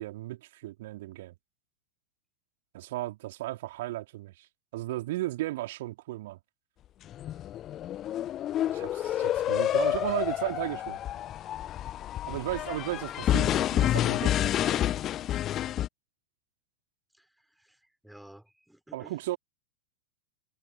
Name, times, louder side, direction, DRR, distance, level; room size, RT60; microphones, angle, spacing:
voice 1, 0.0-1.3 2.7-4.5 4.7-6.4 8.7-11.0 12.3-14.8 18.9-19.4, right 17 dB, 55° right, 3.1 m, -35 dB
sound 1, 7.1-15.9, left 12 dB, 30° left, 0.5 m, -29 dB
voice 2, 17.1-19.2, right 1 dB, ahead, 4.6 m, -54 dB
figure-of-eight pair, 90°, 0 cm